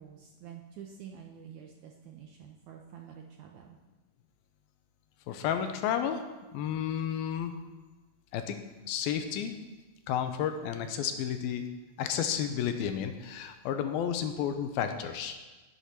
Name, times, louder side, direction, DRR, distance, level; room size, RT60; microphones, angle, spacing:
voice 1, 0.0-3.8, right 8 dB, 75° right, 1 dB, 1.8 m, -48 dB
voice 2, 5.3-6.2 6.5-7.6 8.3-9.5 10.1-11.6 12.0-15.4, left 9 dB, 80° left, 7 dB, 2.6 m, -32 dB
11.0 x 8.4 x 5.9 m, 1.2 s
omnidirectional pair, 4.3 m